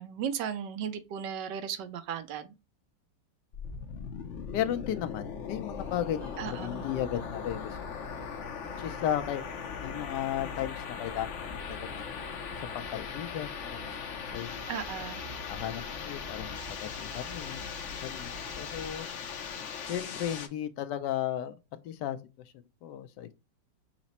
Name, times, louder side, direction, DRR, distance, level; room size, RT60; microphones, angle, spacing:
voice 1, 0.0-2.5 6.4-6.8 14.7-15.2, right 8 dB, 80° right, 1.3 m, -36 dB
sound 1, 3.5-20.5, left 6 dB, 60° left, 0.8 m, -39 dB
voice 2, 4.5-7.8 8.8-9.4 9.8-11.4 11.7-12.1 12.6-14.6 15.5-17.8 18.0-19.1 19.8-21.6 21.8-22.2 22.8-23.3, left 10 dB, 75° left, 1.2 m, -35 dB
sound 2, 5.7-18.9, left 1 dB, 40° right, 0.3 m, -48 dB
5.9 x 2.1 x 4.1 m
omnidirectional pair, 1.9 m